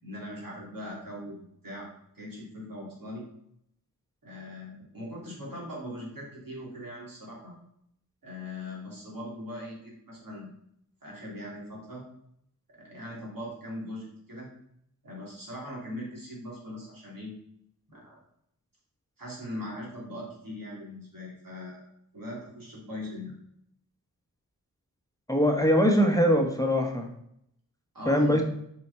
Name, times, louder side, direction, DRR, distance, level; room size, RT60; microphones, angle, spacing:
voice 1, 0.0-1.9 2.1-3.2 4.2-7.5 8.2-10.5 11.0-12.0 12.8-14.5 15.0-17.3 17.9-18.2 19.2-21.8 22.1-23.3 27.9-28.4, left 1 dB, 70° right, -4 dB, 3.2 m, -40 dB
voice 2, 25.3-27.1 28.1-28.4, equal, 10° left, 2 dB, 1.0 m, -22 dB
7.7 x 4.9 x 4.3 m, 0.73 s
wide cardioid pair, 75°, 35 cm